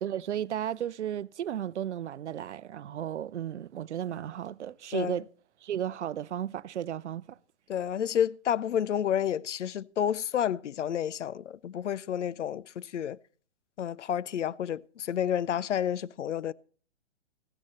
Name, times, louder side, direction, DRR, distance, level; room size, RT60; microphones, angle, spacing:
voice 1, 0.0-5.3 5.6-7.4, right 10 dB, 75° right, 0.6 m, -34 dB
voice 2, 7.7-13.2 13.8-16.5, left 9 dB, 85° left, 0.6 m, -30 dB
14.5 x 12.5 x 4.2 m
hypercardioid pair, 145°, 35 cm